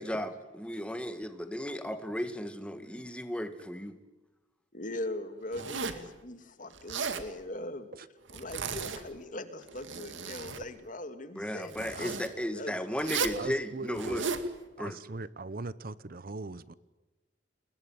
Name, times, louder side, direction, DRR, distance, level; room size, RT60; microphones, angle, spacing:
voice 1, 0.0-4.0 11.4-14.2 14.8-15.0, equal, 5° left, 9 dB, 2.0 m, -35 dB
voice 2, 4.7-7.9 8.3-12.8, left 1 dB, 45° left, 9 dB, 2.4 m, -41 dB
Zipper (clothing), 5.5-6.1 6.7-7.3 8.3-9.2 9.6-10.6 11.7-12.3 13.0-13.4 13.9-14.5, right 5 dB, 85° right, 2.3 m, -35 dB
voice 3, 13.3-14.2 14.8-16.7, right 3 dB, 50° right, 17 dB, 0.9 m, -40 dB
29.0 x 21.0 x 9.4 m, 1.1 s
head